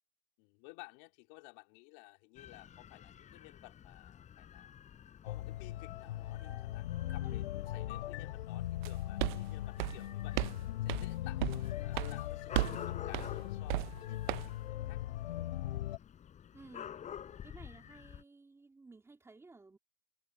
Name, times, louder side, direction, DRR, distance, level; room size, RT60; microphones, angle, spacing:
voice 1, 0.4-4.7 5.2-10.5 10.8-15.1, left 29 dB, 45° left, 2.6 m, -56 dB
Dog / Cat, 2.4-18.2, left 9 dB, 20° left, 5.0 m, -51 dB
sound 1, 5.3-16.0, left 14 dB, 65° left, 2.7 m, -39 dB
sound 2, 8.8-8.9 9.2-9.4 9.8-10.6 10.9-11.1 11.4-11.6 12.0-12.1 12.5-12.8 13.1-13.4 13.7-14.0 14.3-14.5, right 20 dB, 45° right, 0.6 m, -34 dB
voice 2, 16.5-17.0 17.4-19.8, right 3 dB, 10° right, 2.8 m, -56 dB
hypercardioid pair, 135°, 34 cm